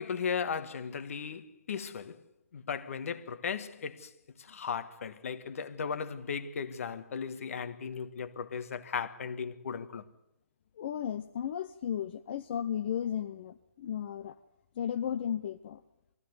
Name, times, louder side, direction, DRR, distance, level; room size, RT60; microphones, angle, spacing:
voice 1, 0.0-2.2 2.5-4.1 4.4-10.0, left 6 dB, 55° left, 1.6 m, -36 dB
voice 2, 10.8-14.3 14.8-15.8, left 9 dB, 35° left, 0.8 m, -34 dB
22.0 x 15.5 x 9.5 m
hypercardioid pair, 165°, 9 cm